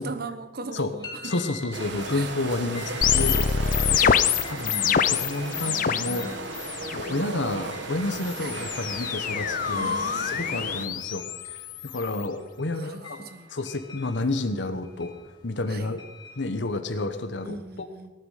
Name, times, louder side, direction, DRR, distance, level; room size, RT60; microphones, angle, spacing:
voice 1, 0.0-1.3 2.1-2.3 3.9-4.2 8.4-8.7 9.5-11.0 12.7-13.5 15.7-15.9 17.4-18.1, right 3 dB, 60° right, 9 dB, 1.1 m, -39 dB
sound 1, 1.0-16.7, left 4 dB, 25° left, 2.8 m, -46 dB
voice 2, 1.2-3.5 3.9-4.1 4.5-6.3 6.9-15.1 15.4-16.0 16.4-17.9, left 2 dB, 80° left, 8 dB, 1.1 m, -30 dB
sound 2, 1.7-10.9, right 2 dB, 75° right, 1.4 m, -35 dB
sound 3, 3.0-6.2 6.5-7.1 8.1-12.2, left 7 dB, 45° left, 0.5 m, -26 dB
18.5 x 9.4 x 5.7 m, 1.1 s
head